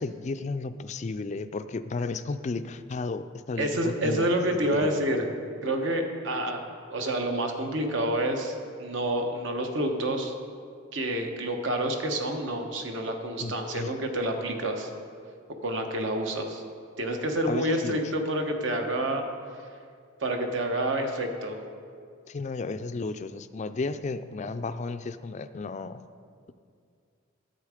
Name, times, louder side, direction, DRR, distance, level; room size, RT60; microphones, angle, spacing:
voice 1, 0.0-5.0 13.4-13.9 17.5-18.0 22.3-26.0, left 3 dB, 35° left, 11 dB, 0.3 m, -33 dB
voice 2, 3.6-5.2 5.6-6.6 6.9-10.3 10.9-14.9 15.6-16.6 17.0-19.2 20.2-21.6, right 1 dB, 60° right, 4 dB, 1.1 m, -28 dB
10.5 x 8.3 x 5.0 m, 2.2 s
head